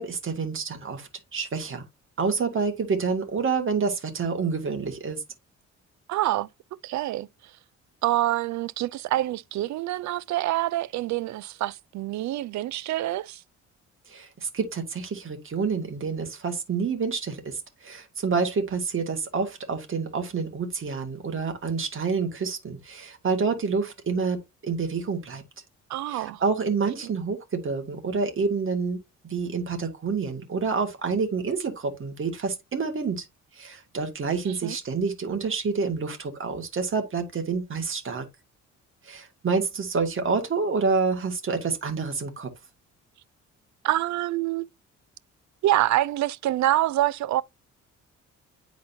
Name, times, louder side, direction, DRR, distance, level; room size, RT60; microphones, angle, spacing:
voice 1, 0.0-1.8 2.2-5.2 14.1-25.4 26.1-33.3 33.5-38.3 39.0-42.5, right 5 dB, 45° right, 2.0 m, -28 dB
voice 2, 6.1-6.5 6.8-7.3 8.0-13.4 25.9-26.4 27.0-27.1 34.6-34.8 43.8-44.7 45.6-47.4, right 15 dB, 70° right, 0.5 m, -26 dB
9.6 x 4.1 x 2.7 m
cardioid pair, 90°, 30 cm